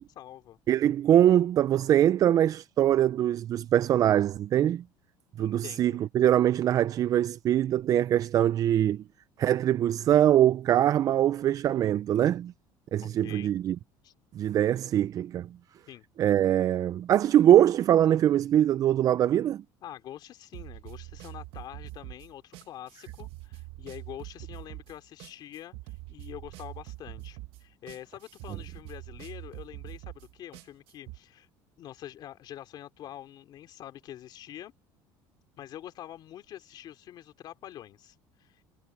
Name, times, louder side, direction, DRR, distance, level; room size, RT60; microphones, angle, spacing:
voice 1, 0.0-0.6 5.4-6.0 13.0-13.5 14.0-14.1 15.9-16.1 19.8-31.5 31.8-34.7 35.6-38.6, left 12 dB, 50° left, 2.9 m, -45 dB
voice 2, 0.7-4.8 5.4-9.0 9.4-12.5 12.9-13.8 14.4-15.5 16.2-19.6, right 11 dB, 40° right, 0.4 m, -23 dB
sound 1, 20.5-31.2, right 18 dB, 75° right, 1.4 m, -44 dB
cardioid pair, 125°, 9 cm